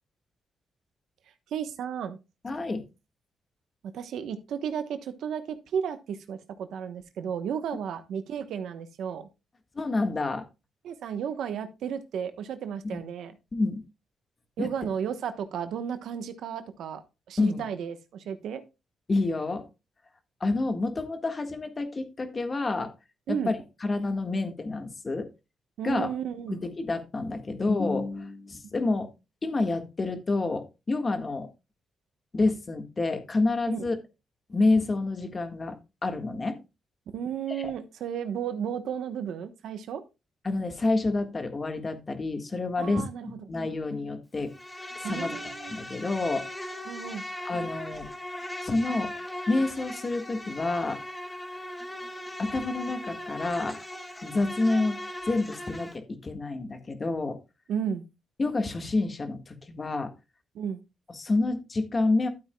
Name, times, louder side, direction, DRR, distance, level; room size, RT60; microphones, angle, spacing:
voice 1, 1.5-2.2 3.9-9.3 10.8-13.3 14.6-17.0 17.3-18.6 23.3-23.5 25.8-26.6 33.7-33.9 37.1-40.0 42.8-43.4 45.0-45.8 46.9-47.2 57.7-58.0 60.5-60.8, right 8 dB, 85° right, 10 dB, 1.0 m, -33 dB
voice 2, 2.4-2.8 9.7-10.5 12.8-13.0 13.5-13.8 14.6-14.7 17.4-17.6 19.1-19.6 20.4-22.9 23.3-23.6 23.8-25.3 25.8-26.1 26.5-29.1 29.4-31.5 32.3-34.0 34.5-35.7 36.0-36.6 37.5-37.7 40.4-44.5 45.0-46.5 47.4-48.1 48.6-49.1 49.5-51.0 52.4-53.8 54.2-55.0 55.3-57.4 58.4-60.1 61.1-62.3, left 3 dB, 30° left, 7 dB, 1.6 m, -28 dB
Insect, 44.5-56.0, left 1 dB, 15° left, 1.8 m, -38 dB
12.5 x 8.4 x 2.3 m, 0.26 s
cardioid pair, 105°, 0 cm